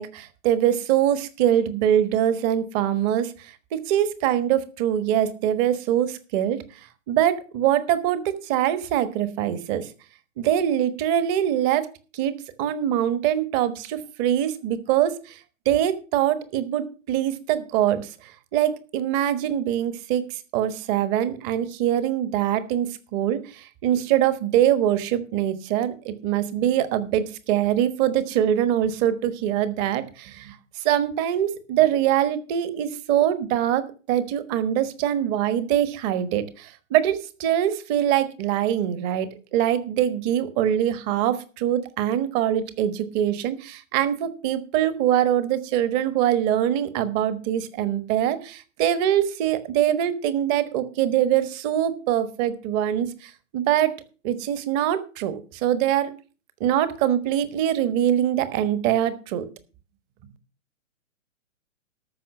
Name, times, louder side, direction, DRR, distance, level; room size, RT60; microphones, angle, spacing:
voice 1, 0.0-6.6 7.1-9.9 10.4-11.9 12.1-12.3 12.6-15.4 15.6-33.8 34.1-53.9 54.2-56.1 56.6-59.4, right 11 dB, 30° right, 13 dB, 1.3 m, -23 dB
13.5 x 6.2 x 6.1 m, 0.36 s
hypercardioid pair, 120°, 39 cm